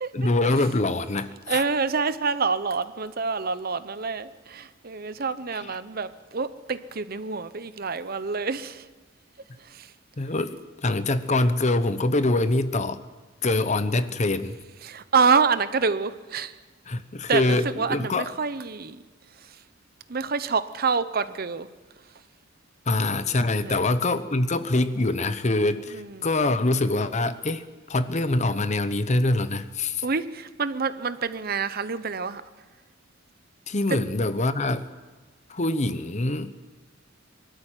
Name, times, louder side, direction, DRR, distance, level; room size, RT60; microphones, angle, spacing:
voice 1, 0.1-1.6 5.5-5.7 10.2-13.0 13.4-14.6 16.9-18.3 22.9-30.0 33.7-34.9 35.5-36.5, left 2 dB, 35° left, 0.9 m, -24 dB
voice 2, 1.5-8.9 9.7-9.9 14.8-16.5 17.3-19.0 20.1-21.7 23.6-23.9 25.9-26.1 30.0-32.4 33.9-34.0, right 5 dB, 50° right, 0.8 m, -27 dB
23.5 x 13.0 x 9.1 m
head